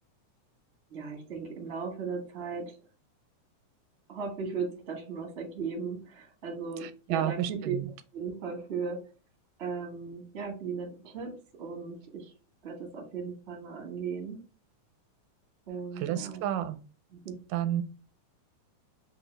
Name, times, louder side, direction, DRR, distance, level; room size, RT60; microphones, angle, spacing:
voice 1, 0.9-2.8 4.1-7.7 8.1-9.0 9.6-11.3 11.6-12.3 12.6-14.4 15.7-16.4 17.1-17.4, right 5 dB, 70° right, -1 dB, 0.6 m, -37 dB
voice 2, 6.8-7.9 16.0-16.8 17.5-17.8, right 11 dB, 85° right, 9 dB, 2.1 m, -31 dB
5.8 x 2.2 x 3.2 m, 0.36 s
omnidirectional pair, 3.6 m